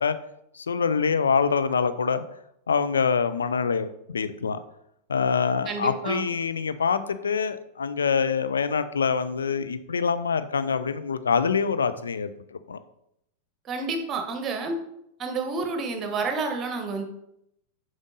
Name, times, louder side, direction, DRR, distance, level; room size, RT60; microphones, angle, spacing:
voice 1, 0.5-2.2 2.7-4.6 5.1-12.8, left 6 dB, 70° left, 11 dB, 0.5 m, -25 dB
voice 2, 5.7-6.2 13.7-14.7 15.2-17.0, right 4 dB, 25° right, 5 dB, 1.3 m, -29 dB
7.1 x 5.2 x 3.8 m, 0.78 s
figure-of-eight pair, 90°, 0 cm